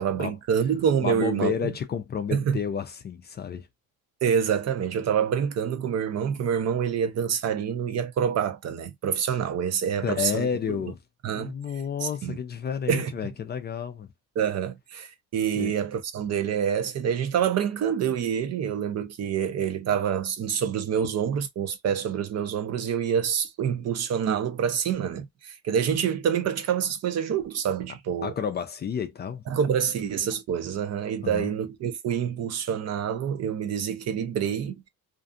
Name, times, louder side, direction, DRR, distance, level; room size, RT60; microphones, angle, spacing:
voice 1, 0.0-1.6 2.3-2.6 4.2-10.8 11.2-11.5 12.0-12.4 12.9-13.1 14.4-28.3 29.5-34.7, right 8 dB, 55° right, 0.6 m, -27 dB
voice 2, 1.0-3.7 10.0-11.0 11.3-14.1 15.5-15.7 28.2-29.5 31.2-31.6, left 7 dB, 30° left, 0.4 m, -31 dB
2.5 x 2.3 x 2.5 m
cardioid pair, 115°, 32 cm